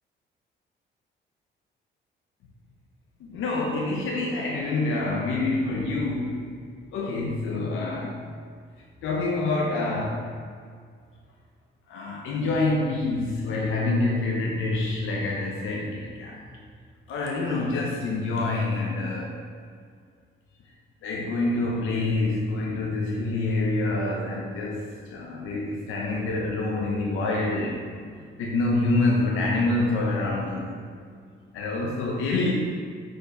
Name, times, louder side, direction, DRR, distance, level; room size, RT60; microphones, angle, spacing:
voice 1, 3.2-6.6 6.9-8.2 9.0-10.3 11.9-16.4 17.1-19.4 21.0-27.8 28.4-30.8 31.5-32.5, left 2 dB, 85° left, -1 dB, 0.8 m, -26 dB
5.1 x 4.5 x 5.0 m, 2.1 s
cardioid pair, 90°, 20 cm